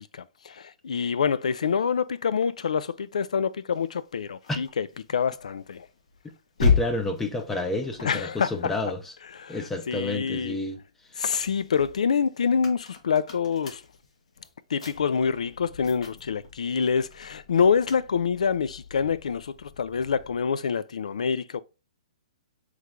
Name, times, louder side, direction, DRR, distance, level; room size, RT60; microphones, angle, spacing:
voice 1, 0.0-5.9 8.0-8.7 9.3-10.6 11.2-13.8 14.7-21.6, left 6 dB, 85° left, 0.3 m, -26 dB
sound 1, 3.7-10.3 10.7-20.5, left 5 dB, 70° left, 1.1 m, -35 dB
voice 2, 6.6-9.1 9.5-10.8, left 2 dB, 5° left, 0.3 m, -30 dB
3.3 x 3.2 x 3.6 m
hypercardioid pair, 165°, 4 cm